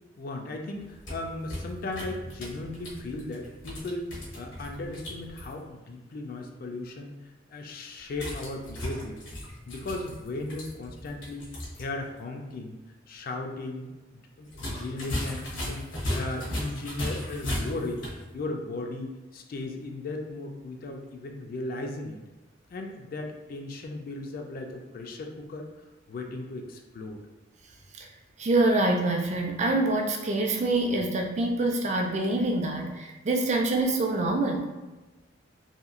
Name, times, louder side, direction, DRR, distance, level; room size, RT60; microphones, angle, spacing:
voice 1, 0.1-9.2 9.7-11.5 11.8-12.8 13.1-18.0 18.3-22.2 22.7-25.7 26.1-27.2, left 2 dB, 50° left, 2 dB, 0.3 m, -36 dB
sound 1, 0.8-5.5 8.1-11.9 12.2-12.3 14.5-18.2, left 1 dB, 80° left, 0.8 m, -36 dB
voice 2, 28.4-34.7, right 2 dB, 35° right, 2 dB, 0.4 m, -25 dB
2.8 x 2.6 x 2.4 m, 1.2 s
head